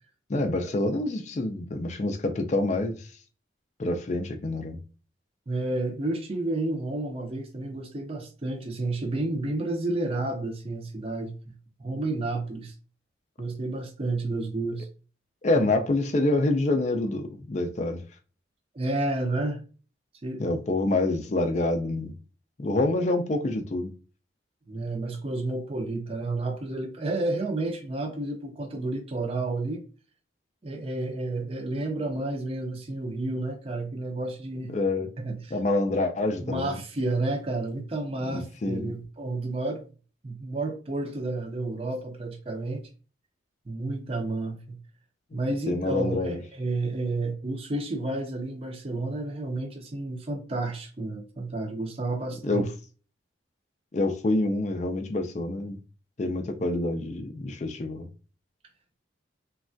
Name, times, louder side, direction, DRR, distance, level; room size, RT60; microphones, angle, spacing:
voice 1, 0.3-3.0 3.8-4.8 15.4-18.0 20.4-22.1 22.6-23.9 34.7-35.1 35.5-36.8 38.3-38.9 45.7-46.4 52.4-52.7 53.9-55.8 56.2-58.1, left 2 dB, 35° left, 0.4 m, -27 dB
voice 2, 5.5-11.3 11.8-12.7 13.4-14.9 15.5-15.7 18.7-19.6 20.2-20.5 24.7-29.8 30.6-34.7 35.2-35.5 36.4-39.8 40.2-42.8 43.7-44.8 45.3-52.6, right 2 dB, 30° right, 0.5 m, -31 dB
3.2 x 2.3 x 2.5 m
head